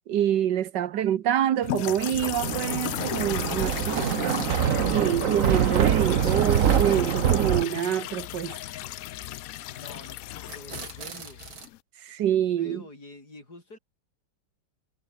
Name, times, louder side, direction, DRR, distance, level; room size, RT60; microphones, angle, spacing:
voice 1, 0.1-4.5 4.9-8.5 12.0-12.8, right 10 dB, 65° right, 1.5 m, -26 dB
sound 1, 1.6-11.8, left 14 dB, 85° left, 0.7 m, -35 dB
Thunder, 2.1-7.6, right 8 dB, 50° right, 1.2 m, -24 dB
sound 2, 2.3-2.7 3.1-4.6 4.9-5.0 5.2-5.3 5.6-5.7 6.0-6.9 9.7-10.1 10.5-11.7, right 6 dB, 85° right, 3.5 m, -42 dB
voice 2, 9.8-11.4 12.3-13.8, left 2 dB, 55° left, 7.6 m, -47 dB
omnidirectional pair, 2.1 m